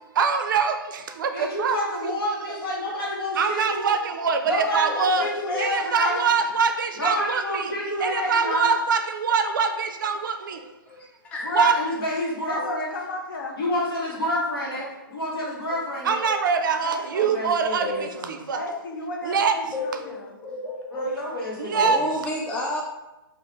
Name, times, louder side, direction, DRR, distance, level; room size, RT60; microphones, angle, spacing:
voice 1, 0.2-2.1 2.5-2.6 3.4-5.3 5.6-7.7 8.0-10.6 11.5-11.8 16.0-17.9 18.3-18.6 19.2-19.6 21.6-22.0, right 5 dB, 60° right, 7 dB, 0.4 m, -24 dB
voice 2, 1.3-3.8 4.4-6.3 6.9-8.7 11.4-12.9 13.6-16.2 17.1-18.4 20.9-22.1, left 1 dB, 75° left, -4 dB, 1.3 m, -28 dB
voice 3, 4.9-5.6 10.9-11.5 12.6-12.7 16.2-16.3 17.8-18.0 19.7-21.1 21.7-22.8, left 2 dB, 10° left, -1 dB, 0.3 m, -31 dB
voice 4, 12.4-13.6 16.8-17.4 18.5-20.3, left 2 dB, 55° left, 1 dB, 0.7 m, -34 dB
3.3 x 2.5 x 2.9 m, 1.0 s
hypercardioid pair, 135°, 12 cm